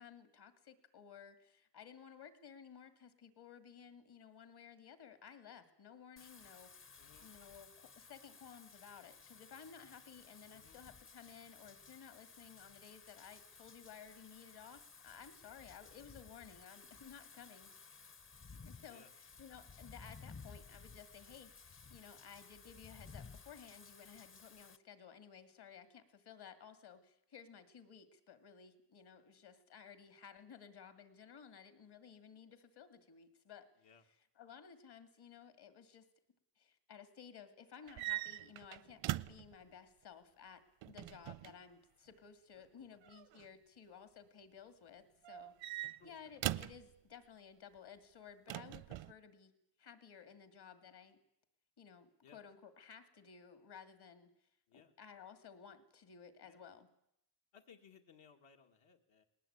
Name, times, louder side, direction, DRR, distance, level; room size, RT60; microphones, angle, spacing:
voice 1, 0.0-6.9 7.2-17.7 18.6-19.1 19.4-33.7 34.4-36.1 36.6-49.5 49.8-51.2 51.8-54.3 54.7-56.9, left 7 dB, 60° left, 10 dB, 2.4 m, -56 dB
Wind / Rain, 6.2-24.8, left 5 dB, 30° left, 0.7 m, -57 dB
voice 2, 7.0-7.3 10.5-10.8 18.9-19.1 33.8-34.0 42.5-43.0 45.8-46.2 52.2-52.4 54.7-54.9 56.4-56.6 57.5-59.2, left 6 dB, 80° left, 3 dB, 2.3 m, -63 dB
sound 1, 37.9-39.5 40.8-41.6 43.1-43.5 45.2-46.8 48.5-49.1, right 15 dB, 85° right, 0.7 m, -41 dB
20.0 x 18.5 x 8.8 m, 0.82 s
cardioid pair, 120°, 45 cm